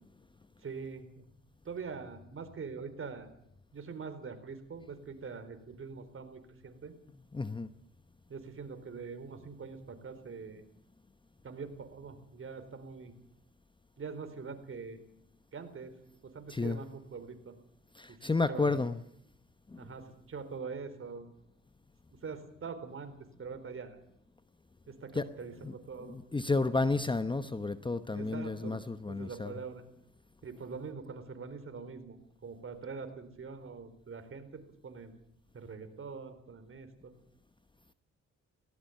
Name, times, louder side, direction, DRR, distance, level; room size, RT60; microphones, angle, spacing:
voice 1, 0.6-1.2 1.6-3.3 3.7-6.9 8.3-10.6 11.4-13.1 14.0-15.0 15.5-15.9 16.2-17.5 18.1-18.2 18.5-18.8 19.8-21.3 22.2-24.0 24.9-26.2 28.1-28.8 29.1-29.8 30.4-32.2 32.4-35.1 35.5-37.1, right 5 dB, 45° right, 9 dB, 4.0 m, -43 dB
voice 2, 7.3-7.7 16.5-16.8 18.0-19.0 19.7-19.8 25.1-25.2 25.6-25.7 26.1-29.5, left 3 dB, 15° left, 12 dB, 0.9 m, -31 dB
18.0 x 17.5 x 9.3 m, 0.73 s
cardioid pair, 90°, 30 cm